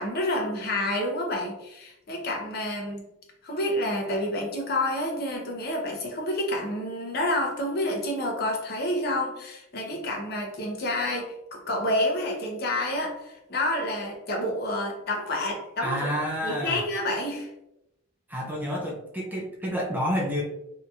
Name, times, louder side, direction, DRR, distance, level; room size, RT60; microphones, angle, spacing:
voice 1, 0.0-3.0 3.4-16.1 16.4-17.5, left 1 dB, 50° left, 1 dB, 0.6 m, -29 dB
voice 2, 15.8-16.8 18.3-20.4, equal, 10° right, -2 dB, 0.4 m, -29 dB
2.8 x 2.6 x 2.3 m, 0.85 s
head